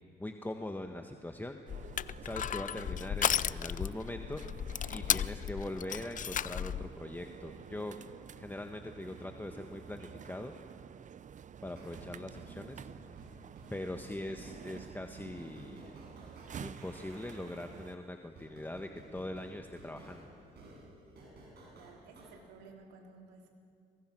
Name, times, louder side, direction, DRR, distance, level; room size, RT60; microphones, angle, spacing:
voice 1, 0.2-1.9 2.2-4.4 4.9-8.0 8.4-10.5 11.6-13.2 13.7-16.0 16.6-20.3, left 1 dB, 10° left, 5 dB, 1.5 m, -42 dB
Crushing, 1.7-6.9, left 9 dB, 45° left, 0.6 m, -34 dB
sound 1, 1.7-18.0, right 8 dB, 45° right, 0.6 m, -50 dB
sound 2, 11.7-22.3, right 2 dB, 60° right, 8.0 m, -54 dB
voice 2, 21.7-23.5, right 4 dB, 85° right, 2 dB, 3.5 m, -55 dB
27.5 x 23.0 x 6.2 m, 2.3 s
supercardioid pair, 60°, 18 cm